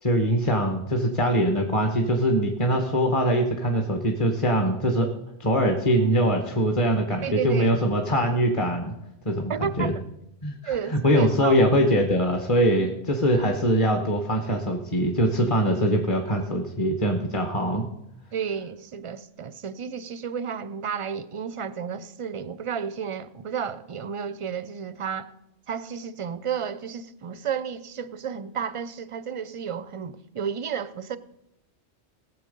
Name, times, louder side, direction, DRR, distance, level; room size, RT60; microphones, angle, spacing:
voice 1, 0.0-5.1 5.4-8.9 9.2-9.9 10.4-17.9, equal, 30° left, 1.1 m, -23 dB
voice 2, 7.2-7.7 9.5-9.9 10.6-11.6 18.3-25.3 25.7-31.2, right 7 dB, 45° right, 0.4 m, -32 dB
18.5 x 7.2 x 5.3 m
omnidirectional pair, 1.2 m